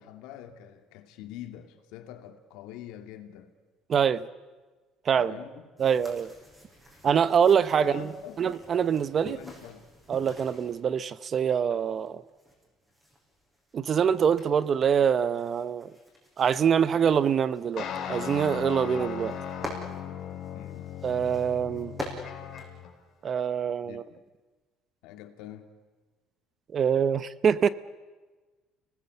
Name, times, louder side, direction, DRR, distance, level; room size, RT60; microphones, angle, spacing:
voice 1, 0.0-3.5 5.2-5.7 7.8-8.4 9.2-9.9 20.5-20.9 23.8-24.2 25.0-25.7, left 11 dB, 85° left, 7 dB, 2.4 m, -44 dB
voice 2, 3.9-4.2 5.1-5.3 5.8-6.3 7.0-8.1 8.4-9.4 10.1-12.2 13.7-15.9 16.4-19.4 21.0-22.0 23.2-24.0 26.7-27.7, right 7 dB, 35° right, 16 dB, 0.7 m, -24 dB
sound 1, 5.8-10.8 11.8-23.6, equal, 10° right, 5.8 m, -47 dB
sound 2, 17.8-22.9, left 9 dB, 50° left, 4.2 m, -37 dB
30.0 x 19.0 x 8.0 m, 1.3 s
cardioid pair, 140°, 0 cm